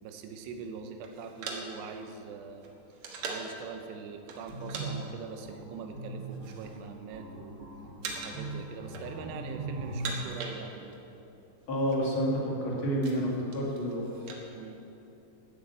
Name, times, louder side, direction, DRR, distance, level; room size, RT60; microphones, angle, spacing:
voice 1, 0.0-2.7 3.3-7.7 8.2-11.0 14.5-14.8, right 5 dB, 75° right, 5 dB, 3.0 m, -43 dB
sound 1, 1.0-3.6 4.3-4.9 5.1-5.4 6.0-6.8 7.1-7.6 8.0-8.5 8.8-9.4 9.8-11.1 11.3-11.4 11.6-12.0 12.5-14.4, right 4 dB, 60° right, 1.9 m, -41 dB
sound 2, 4.5-10.2, right 2 dB, 30° right, 1.8 m, -39 dB
voice 2, 11.7-14.1, equal, 40° left, -3 dB, 2.0 m, -29 dB
12.5 x 8.4 x 8.1 m, 2.9 s
omnidirectional pair, 5.0 m